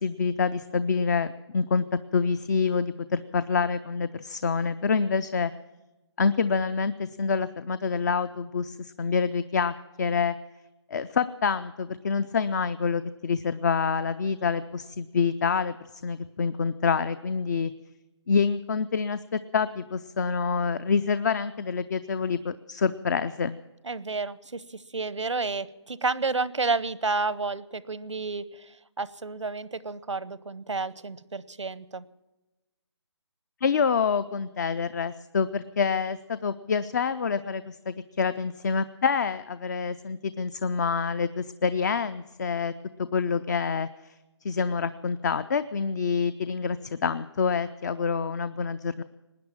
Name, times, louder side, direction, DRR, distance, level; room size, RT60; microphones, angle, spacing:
voice 1, 0.0-1.8 2.1-5.5 6.2-10.3 10.9-15.7 16.0-17.7 18.3-23.6 33.6-42.7 43.1-43.9 44.4-49.0, left 5 dB, 40° left, 15 dB, 0.5 m, -27 dB
voice 2, 23.8-32.0, right 3 dB, 85° right, 18 dB, 0.8 m, -31 dB
19.5 x 9.8 x 7.3 m, 1.1 s
figure-of-eight pair, 150°, 15 cm